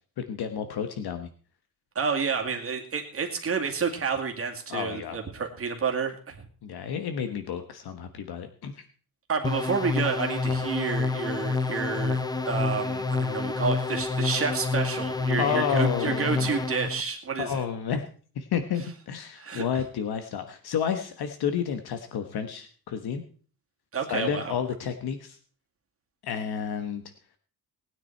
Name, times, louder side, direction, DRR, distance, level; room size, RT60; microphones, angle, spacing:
voice 1, 0.2-1.3 4.7-5.2 6.6-8.8 10.4-10.6 15.4-16.5 17.4-18.0 18.3-23.2 24.1-25.4 26.2-27.0, left 7 dB, 70° left, 8 dB, 1.3 m, -30 dB
voice 2, 2.0-6.4 9.3-17.6 19.4-19.7 23.9-24.6, right 5 dB, 35° right, 2 dB, 2.2 m, -30 dB
sound 1, 9.4-17.0, left 3 dB, 10° left, 0.6 m, -28 dB
19.0 x 9.6 x 4.5 m, 0.42 s
wide cardioid pair, 175°, 39 cm